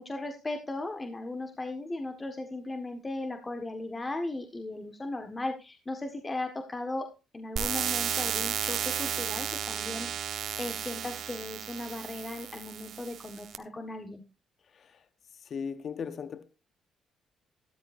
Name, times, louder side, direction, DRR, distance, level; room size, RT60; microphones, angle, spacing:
voice 1, 0.0-7.1 7.3-14.2, left 2 dB, 25° left, 1.5 m, -37 dB
sound 1, 7.6-13.6, right 9 dB, 70° right, 1.1 m, -33 dB
voice 2, 14.7-15.1 15.4-16.4, left 6 dB, 55° left, 1.1 m, -38 dB
13.0 x 13.0 x 2.6 m
cardioid pair, 90°, 0 cm